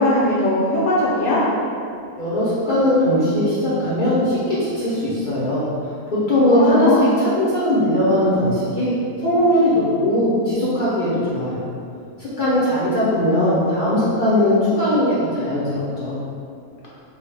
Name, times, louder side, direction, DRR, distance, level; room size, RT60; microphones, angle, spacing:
voice 1, 0.0-1.4 6.5-7.1, left 1 dB, 85° left, -7 dB, 1.1 m, -19 dB
voice 2, 2.2-5.6 6.1-11.7 12.2-16.2, left 1 dB, 60° left, -10 dB, 0.5 m, -19 dB
3.6 x 2.0 x 3.2 m, 2.4 s
omnidirectional pair, 1.5 m